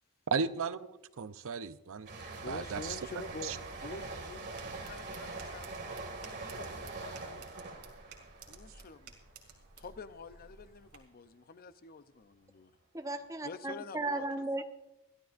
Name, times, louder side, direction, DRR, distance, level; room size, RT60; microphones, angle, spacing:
voice 1, 0.3-2.1 2.5-3.0 3.4-3.6, right 5 dB, 65° right, 14 dB, 0.6 m, -35 dB
sound 1, 2.0-9.5 9.8-10.1, right 3 dB, 50° right, 2.2 m, -43 dB
voice 2, 2.4-7.5 8.5-9.1 9.8-12.7 13.4-14.6, left 4 dB, 45° left, 13 dB, 0.6 m, -48 dB
sound 2, 3.7-11.0, right 5 dB, 80° right, 2.5 m, -56 dB
voice 3, 12.9-14.6, right 2 dB, 15° right, 7 dB, 0.9 m, -35 dB
23.0 x 14.0 x 2.5 m, 0.97 s
head